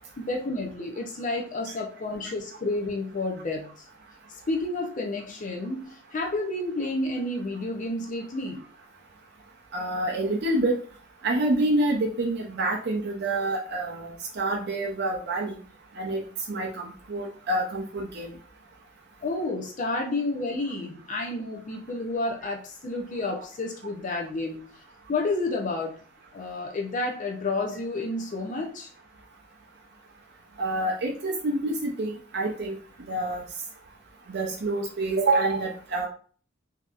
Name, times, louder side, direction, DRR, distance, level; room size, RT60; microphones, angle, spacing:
voice 1, 0.2-3.8 4.3-8.6 19.2-24.8 25.1-26.0 26.3-28.9, left 2 dB, 40° left, 0 dB, 0.5 m, -30 dB
voice 2, 9.7-10.8 11.2-15.5 16.0-16.2 16.5-18.3 30.6-32.8 33.1-33.4 34.3-36.1, right 2 dB, 55° right, 0 dB, 0.6 m, -27 dB
3.8 x 2.8 x 2.4 m, 0.43 s
head